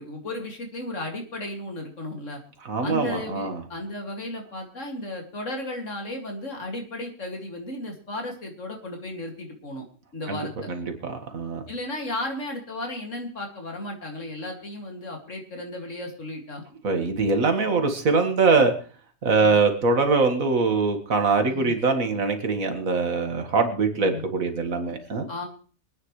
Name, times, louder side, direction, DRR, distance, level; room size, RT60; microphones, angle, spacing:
voice 1, 0.0-2.4 2.8-9.8 10.1-10.7 11.7-16.6 18.1-18.2 19.4-19.6 21.5-21.7 24.0-24.2 25.3-25.5, left 1 dB, 65° left, 2 dB, 2.8 m, -34 dB
voice 2, 2.6-3.6 10.3-10.4 10.7-11.6 16.8-18.7 19.2-25.3, right 4 dB, 85° right, 5 dB, 2.2 m, -23 dB
25.0 x 9.6 x 3.2 m, 0.40 s
omnidirectional pair, 1.4 m